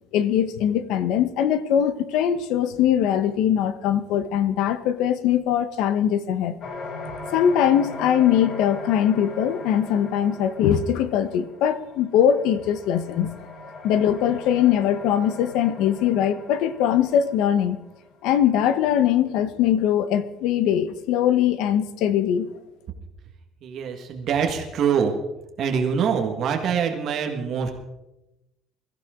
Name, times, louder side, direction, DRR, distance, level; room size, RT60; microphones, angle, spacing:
voice 1, 0.1-6.6 7.3-13.3 13.8-17.8 18.2-22.5, left 9 dB, 70° left, 13 dB, 1.1 m, -21 dB
sound 1, 6.6-18.1, left 3 dB, 40° left, 2.0 m, -39 dB
voice 2, 23.6-25.2 25.6-27.7, right 7 dB, 45° right, 3 dB, 1.8 m, -24 dB
22.0 x 14.5 x 3.8 m, 0.95 s
cardioid pair, 170°, 0 cm